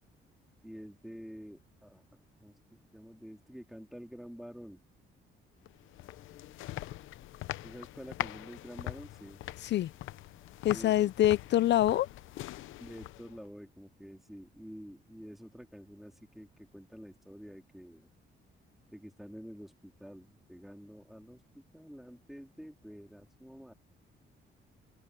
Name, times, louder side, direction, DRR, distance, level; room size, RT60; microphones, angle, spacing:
voice 1, 0.6-4.8 7.6-9.4 10.7-11.1 12.8-18.1 18.9-23.7, equal, ahead, 3.6 m, -49 dB
sound 1, 5.7-13.5, left 15 dB, 85° left, 0.8 m, -43 dB
voice 2, 10.6-12.1, left 13 dB, 60° left, 0.5 m, -25 dB
open air
cardioid pair, 90°, 20 cm